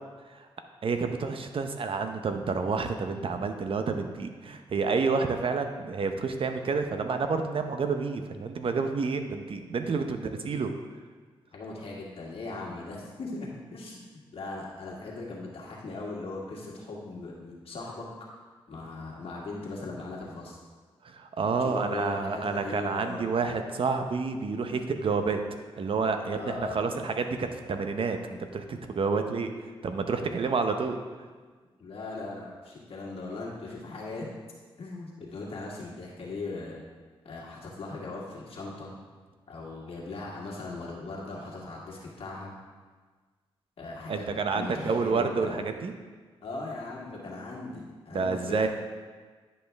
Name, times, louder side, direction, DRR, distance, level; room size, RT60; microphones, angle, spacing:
voice 1, 0.8-10.7 21.0-25.4 25.8-29.5 29.8-31.0 44.1-45.9 48.1-48.7, right 4 dB, 60° right, 6 dB, 0.8 m, -29 dB
voice 2, 11.5-14.0 14.3-18.1 18.7-20.6 21.6-23.4 26.2-26.9 31.8-34.3 34.8-36.8 37.2-38.9 39.5-42.5 43.8-44.3 44.5-45.6 46.4-48.7, left 3 dB, 70° left, -4 dB, 1.8 m, -39 dB
10.0 x 5.5 x 3.5 m, 1.4 s
cardioid pair, 60°, 10 cm